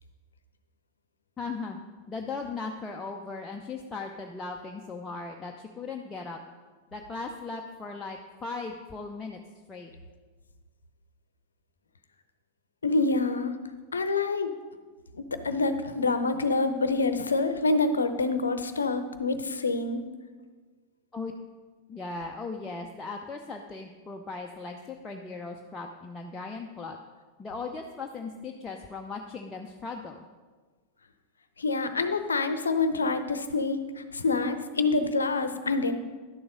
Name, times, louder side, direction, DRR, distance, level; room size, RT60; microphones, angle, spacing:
voice 1, 1.4-1.8 2.1-6.4 6.9-9.4 9.7-9.9 21.1-21.3 21.9-27.0 27.4-30.3, left 4 dB, 15° left, 1 dB, 0.7 m, -38 dB
voice 2, 12.8-13.6 13.9-14.5 15.1-20.0 31.6-35.9, left 3 dB, 75° left, 10 dB, 0.7 m, -27 dB
11.5 x 7.0 x 5.3 m, 1.4 s
figure-of-eight pair, 90°, 0 cm